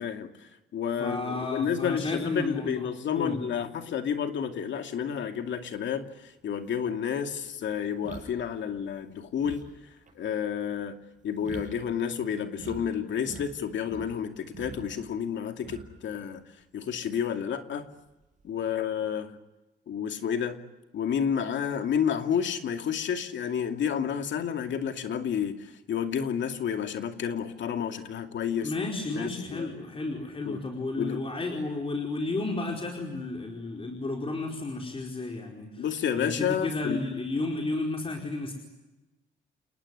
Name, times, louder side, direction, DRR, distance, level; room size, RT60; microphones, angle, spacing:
voice 1, 0.0-9.6 10.2-11.0 11.2-16.4 16.7-17.9 18.4-19.4 19.9-20.6 20.9-28.9 29.1-29.7 30.5-30.6 31.0-31.2 35.8-37.0, left 8 dB, 70° left, 6 dB, 2.5 m, -30 dB
voice 2, 1.0-2.9 3.1-3.4 28.6-35.8 36.1-38.5, left 2 dB, 30° left, 1 dB, 4.8 m, -32 dB
sound 1, 6.1-6.2 6.7-12.8 13.1-14.1 14.5-16.1 16.4-16.6 18.1-18.6, right 5 dB, 40° right, 7.0 m, -45 dB
29.0 x 19.5 x 9.9 m, 1.0 s
cardioid pair, 90°, 20 cm